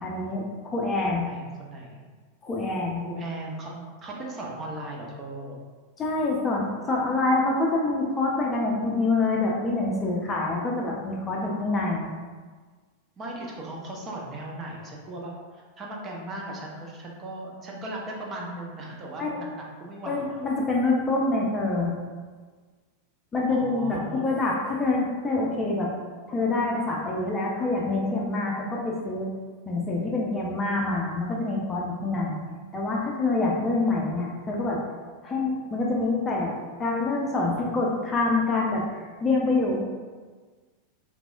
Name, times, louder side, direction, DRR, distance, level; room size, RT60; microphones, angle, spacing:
voice 1, 0.0-1.3 2.4-3.0 6.0-12.1 19.2-19.4 20.1-21.9 23.3-25.9 26.3-29.3 29.7-32.4 32.7-34.8 35.2-36.5 36.8-39.8, left 2 dB, 20° left, -2 dB, 0.6 m, -26 dB
voice 2, 1.0-2.1 3.0-5.6 13.2-20.5 23.5-24.3 33.8-34.3, right 1 dB, 25° right, -2 dB, 0.6 m, -38 dB
3.4 x 3.3 x 2.5 m, 1.4 s
figure-of-eight pair, 90°, 0 cm